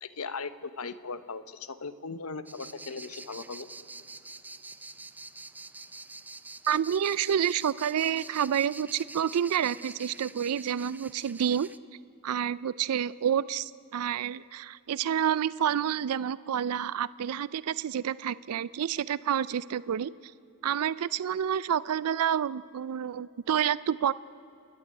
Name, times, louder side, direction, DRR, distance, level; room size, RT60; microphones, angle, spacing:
voice 1, 0.0-3.7, left 4 dB, 75° left, 13 dB, 1.0 m, -38 dB
sound 1, 2.5-11.8, right 3 dB, 10° right, 0.4 m, -46 dB
voice 2, 6.7-11.7 12.2-20.3 20.6-24.1, right 9 dB, 85° right, 19 dB, 0.4 m, -29 dB
29.0 x 11.0 x 10.0 m, 2.8 s
head